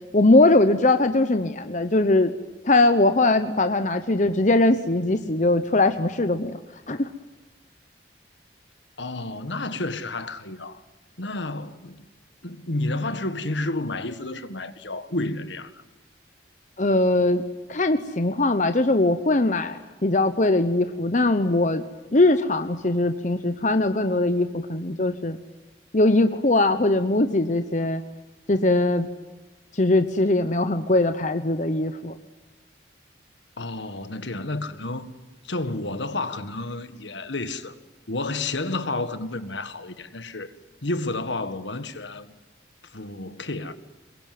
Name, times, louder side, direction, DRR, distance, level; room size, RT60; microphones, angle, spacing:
voice 1, 0.1-2.3 2.6-6.6 6.9-7.1 16.8-17.4 17.7-21.8 22.1-25.4 25.9-28.0 28.5-29.1 29.7-32.1, left 2 dB, 40° left, 0.9 m, -21 dB
voice 2, 9.0-10.8 11.2-12.0 12.4-15.8 33.6-35.1 35.4-37.7 38.1-40.5 40.8-42.3 42.8-43.7, left 2 dB, 70° left, 1.7 m, -30 dB
24.5 x 22.0 x 9.4 m
head